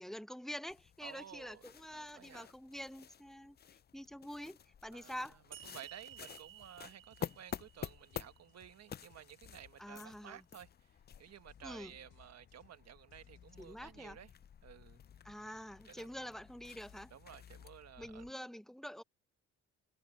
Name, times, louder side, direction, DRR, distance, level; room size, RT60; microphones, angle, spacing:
voice 1, 0.0-3.6 3.9-5.4 9.8-10.4 11.6-11.9 13.6-14.2 15.2-17.1 18.0-19.0, equal, ahead, 0.8 m, -46 dB
sound 1, 0.7-18.3, left 8 dB, 35° left, 0.5 m, -51 dB
voice 2, 1.0-1.7 1.9-2.5 4.9-14.3 14.6-15.0 15.8-16.1 17.1-18.3, right 10 dB, 60° right, 1.4 m, -54 dB
sound 2, 5.5-8.9, right 11 dB, 40° right, 0.6 m, -56 dB
sound 3, 5.6-5.8 6.1-13.9, left 11 dB, 75° left, 4.2 m, -70 dB
cardioid pair, 90°, 30 cm